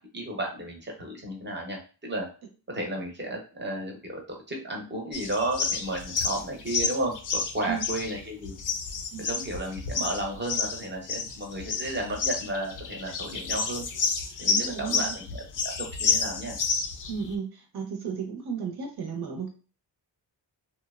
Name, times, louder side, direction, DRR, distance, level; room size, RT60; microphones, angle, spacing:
voice 1, 0.1-2.3 2.7-8.6 9.2-13.9 14.4-16.6, right 1 dB, 25° right, 1 dB, 0.8 m, -33 dB
sound 1, 5.1-17.3, left 5 dB, 45° left, 0.5 m, -30 dB
voice 2, 14.5-15.2 17.1-17.5 17.7-19.5, right 6 dB, 55° right, 2 dB, 0.8 m, -33 dB
2.8 x 2.0 x 2.3 m, 0.36 s
cardioid pair, 85°, 44 cm